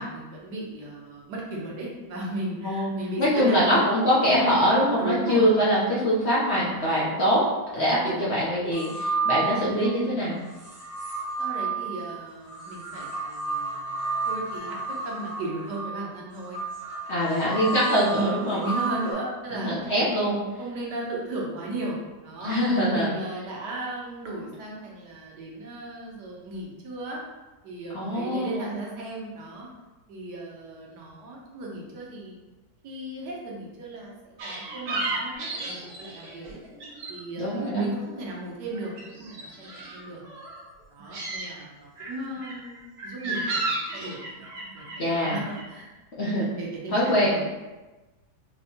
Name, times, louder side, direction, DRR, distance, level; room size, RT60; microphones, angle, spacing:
voice 1, 0.0-3.8 5.0-5.5 7.8-8.3 11.4-13.8 14.3-16.6 17.2-17.6 18.1-19.8 20.6-22.6 22.9-27.2 27.6-29.7 30.1-32.3 32.8-36.6 37.1-40.2 40.9-42.8 43.0-45.9 46.6-47.5, right 2 dB, 90° right, -3 dB, 1.4 m, -36 dB
voice 2, 3.2-7.4 7.7-10.4 17.1-18.6 19.5-20.4 22.4-23.1 27.9-28.7 37.4-37.9 45.0-45.4 46.2-46.5 46.9-47.3, equal, 55° left, -7 dB, 0.8 m, -23 dB
sound 1, 8.7-10.0 10.5-19.1, right 4 dB, 20° right, 0.3 m, -32 dB
sound 2, 34.4-37.2 37.4-38.3 38.6-40.6 41.0-41.5 42.0-45.6, right 2 dB, 70° right, 1.2 m, -34 dB
4.5 x 2.1 x 2.7 m, 1.1 s
omnidirectional pair, 1.8 m